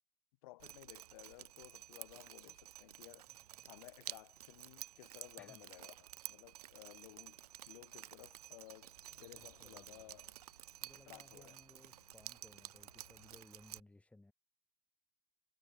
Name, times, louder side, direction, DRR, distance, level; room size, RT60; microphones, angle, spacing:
voice 1, 0.4-3.3 3.6-8.9 9.2-10.3 10.9-11.6, left 19 dB, 70° left, 1.6 m, -57 dB
Drip, 0.6-13.8, right 13 dB, 85° right, 0.5 m, -52 dB
sound 1, 6.4-13.4, left 8 dB, 90° left, 5.5 m, -72 dB
voice 2, 9.2-10.2 10.8-14.3, left 2 dB, 5° left, 1.5 m, -62 dB
hypercardioid pair, 90°, 19 cm